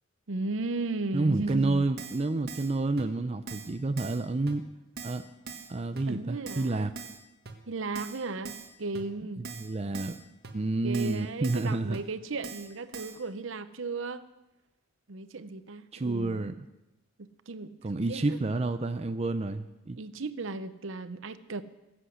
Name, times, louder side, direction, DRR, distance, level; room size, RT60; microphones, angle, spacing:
voice 1, 0.3-1.8 6.1-6.9 7.7-9.4 10.8-14.2 15.1-16.6 17.2-18.4 20.0-21.6, right 3 dB, 65° right, 13 dB, 0.7 m, -35 dB
voice 2, 1.1-4.6 5.0-5.3 5.7-6.9 9.4-10.2 10.5-12.0 15.9-16.6 17.8-20.0, right 2 dB, 30° right, 8 dB, 0.5 m, -29 dB
Keyboard (musical), 1.5-1.6 2.0-2.2 2.5-2.7 3.0-3.1 3.5-3.7 4.0-4.2 4.5-4.6 5.0-5.2 5.5-5.7 6.0-6.1 6.5-6.7 7.0-7.2 7.4-7.5 7.9-8.2 8.4-8.7 8.9-9.0 9.4-9.7 9.9-10.2 10.4-10.5 10.9-11.2 11.4-11.7 11.9-12.0 12.4-12.7 12.9-13.2, right 4 dB, 50° right, 1.6 m, -42 dB
23.0 x 8.0 x 6.3 m, 1.0 s
head